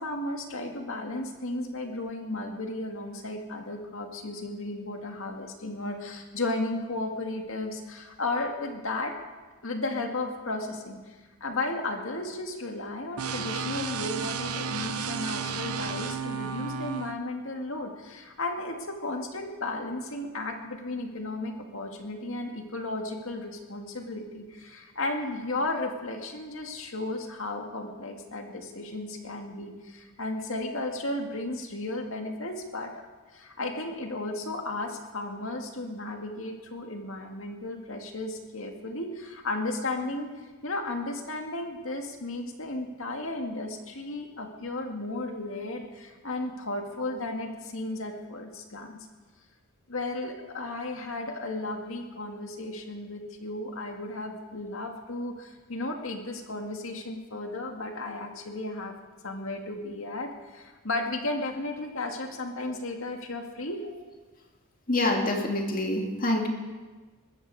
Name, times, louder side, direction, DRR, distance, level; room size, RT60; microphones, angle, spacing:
voice 1, 0.0-9.1 9.6-11.1 11.4-33.0 33.3-40.3 40.6-49.1 49.9-58.9 59.2-63.8, left 2 dB, 65° left, 3 dB, 2.1 m, -34 dB
sound 1, 13.2-17.1, right 5 dB, 85° right, 1.0 m, -33 dB
voice 2, 64.9-66.5, left 1 dB, 40° left, 1 dB, 2.4 m, -26 dB
20.0 x 15.0 x 4.9 m, 1.3 s
head